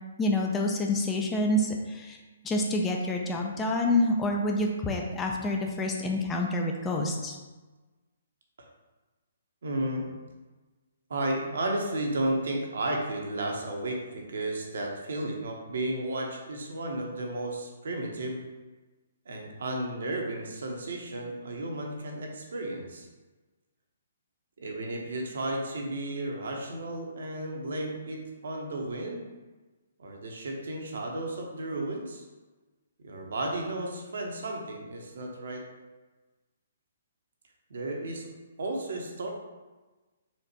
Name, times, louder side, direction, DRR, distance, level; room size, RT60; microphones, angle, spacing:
voice 1, 0.2-2.2 2.4-7.4, left 1 dB, 15° left, 1 dB, 0.4 m, -27 dB
voice 2, 9.6-10.1 11.1-18.4 19.3-23.1 24.6-29.2 30.0-32.2 33.0-35.6 37.7-38.3 38.6-39.3, right 1 dB, 65° right, 1 dB, 0.9 m, -33 dB
4.3 x 2.5 x 4.3 m, 1.2 s
figure-of-eight pair, 130°, 0 cm